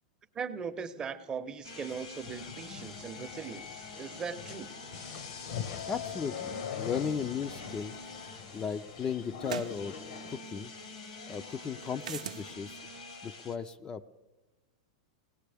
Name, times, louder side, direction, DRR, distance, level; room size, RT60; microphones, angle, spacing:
voice 1, 0.3-4.7, right 6 dB, 20° right, 10 dB, 0.7 m, -39 dB
sound 1, 1.6-13.6, left 3 dB, 90° left, 1.8 m, -47 dB
sound 2, 2.2-10.4, left 7 dB, 65° left, 0.9 m, -43 dB
voice 2, 5.9-8.0 8.5-9.9 10.3-10.7 11.3-12.8 13.2-14.1, left 6 dB, 20° left, 9 dB, 0.4 m, -36 dB
sound 3, 8.1-8.2 9.4-9.8 12.0-12.4, right 9 dB, 90° right, 0.5 m, -38 dB
22.5 x 18.0 x 3.4 m, 1.1 s
hypercardioid pair, 125°, 4 cm